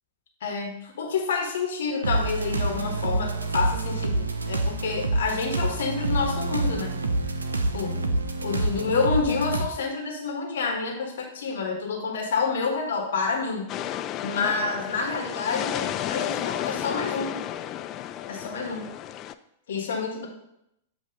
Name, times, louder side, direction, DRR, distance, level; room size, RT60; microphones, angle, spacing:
voice 1, 0.4-6.9 7.7-8.0 8.4-13.7 14.2-17.3 18.3-18.8 19.7-20.3, left 5 dB, 65° left, 1 dB, 1.4 m, -28 dB
sound 1, 2.0-9.7, right 2 dB, 80° right, 0.6 m, -27 dB
sound 2, 13.7-19.3, left 11 dB, 35° left, 0.3 m, -32 dB
7.9 x 2.9 x 5.2 m, 0.80 s
figure-of-eight pair, 100°, 0 cm